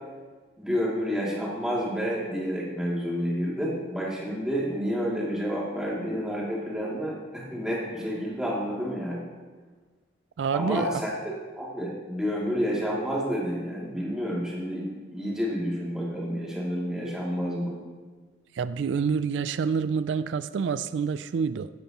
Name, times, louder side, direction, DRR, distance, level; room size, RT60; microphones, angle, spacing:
voice 1, 0.6-9.2 10.5-17.8, equal, 5° right, -6 dB, 2.6 m, -29 dB
voice 2, 10.4-11.0 18.5-21.7, right 6 dB, 85° right, 13 dB, 0.3 m, -27 dB
15.5 x 11.0 x 3.0 m, 1.4 s
head